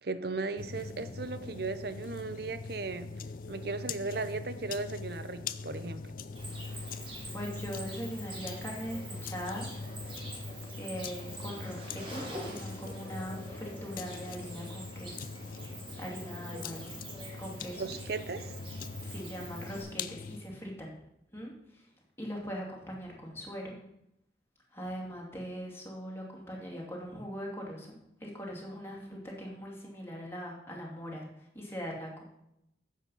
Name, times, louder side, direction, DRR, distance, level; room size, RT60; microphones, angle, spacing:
voice 1, 0.0-3.1 3.5-6.1 17.7-18.5, right 3 dB, 55° right, 12 dB, 0.7 m, -36 dB
sound 1, 0.6-20.4, left 4 dB, 45° left, 0.4 m, -42 dB
Cricket, 6.3-19.8, right 1 dB, 30° right, 2.6 m, -46 dB
voice 2, 7.2-9.7 10.8-15.3 16.0-16.9 17.4-17.8 19.0-21.0 21.3-21.8 22.2-23.8 24.7-31.3 31.5-32.2, equal, 15° left, -2 dB, 2.5 m, -41 dB
9.4 x 7.4 x 5.5 m, 0.81 s
head